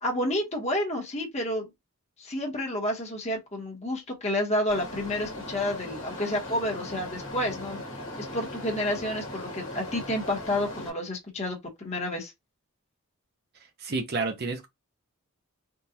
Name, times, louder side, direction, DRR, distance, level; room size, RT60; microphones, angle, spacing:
voice 1, 0.0-1.7 2.2-7.8 8.2-12.3, left 1 dB, 30° left, 1.1 m, -30 dB
sound 1, 4.7-10.9, left 1 dB, 60° left, 1.3 m, -38 dB
voice 2, 13.8-14.7, right 3 dB, 45° right, 0.7 m, -30 dB
3.6 x 2.4 x 2.8 m
head